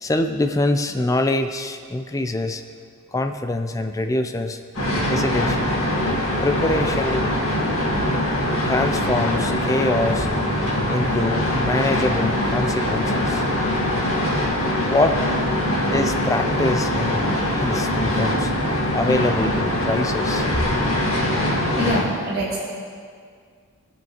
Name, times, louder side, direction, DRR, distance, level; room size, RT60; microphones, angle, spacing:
voice 1, 0.0-2.6 3.1-4.6 5.1-5.8 6.4-7.3 8.7-10.3 10.9-13.4 14.8-15.2 15.9-18.5 18.9-20.5, left 2 dB, 15° left, 7 dB, 0.4 m, -24 dB
sound 1, 4.7-22.0, left 1 dB, 75° left, 1.9 m, -22 dB
voice 2, 21.7-22.6, equal, 45° right, -8 dB, 1.6 m, -25 dB
17.0 x 7.1 x 3.0 m, 2.1 s
head